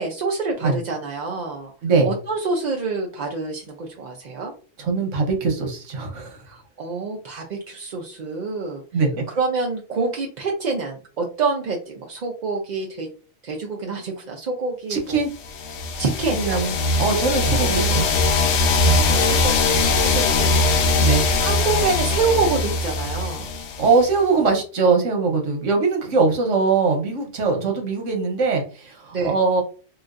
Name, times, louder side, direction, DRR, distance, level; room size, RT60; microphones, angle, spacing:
voice 1, 0.0-1.7 2.0-4.5 6.5-8.8 9.3-13.1 13.4-15.2 16.0-16.4 17.5-18.1 18.9-19.5 19.9-20.6 21.4-23.5 27.5-27.7 29.1-29.4, right 4 dB, 55° right, 0 dB, 0.5 m, -27 dB
voice 2, 4.8-6.4 8.9-9.2 14.9-15.3 16.3-18.1 18.8-19.1 21.0-21.3 23.8-29.6, right 4 dB, 85° right, 3 dB, 1.2 m, -21 dB
sound 1, 15.4-24.2, left 3 dB, 70° left, 0.8 m, -21 dB
3.8 x 2.3 x 2.5 m, 0.38 s
omnidirectional pair, 1.3 m